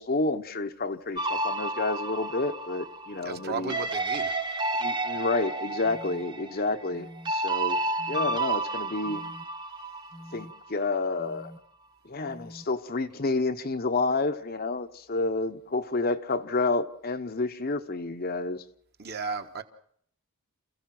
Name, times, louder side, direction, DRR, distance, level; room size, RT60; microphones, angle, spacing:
voice 1, 0.0-3.8 4.8-7.8 8.1-9.2 10.3-11.5 12.0-18.6, left 3 dB, 40° left, 0.9 m, -29 dB
sound 1, 1.2-10.6, right 2 dB, 20° right, 0.8 m, -31 dB
voice 2, 3.2-4.4 19.0-19.6, right 4 dB, 45° right, 1.4 m, -34 dB
sound 2, 5.1-5.2 5.8-6.2 6.9-7.3 8.0-8.4 9.0-9.4 10.1-10.5 11.2-11.6 12.2-12.6, equal, 15° left, 1.0 m, -46 dB
28.5 x 15.0 x 6.0 m
head